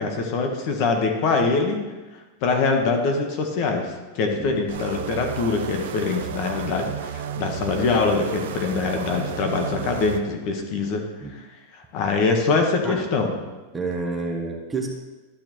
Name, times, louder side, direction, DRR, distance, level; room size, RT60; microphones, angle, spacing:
voice 1, 0.0-1.8 2.4-11.0 11.9-13.3, left 4 dB, 45° left, 3 dB, 1.2 m, -23 dB
sound 1, 4.7-10.2, right 9 dB, 85° right, 0.6 m, -33 dB
voice 2, 13.7-14.9, right 3 dB, 10° right, 1 dB, 0.9 m, -29 dB
11.5 x 6.5 x 3.1 m, 1.2 s
supercardioid pair, 145°, 0 cm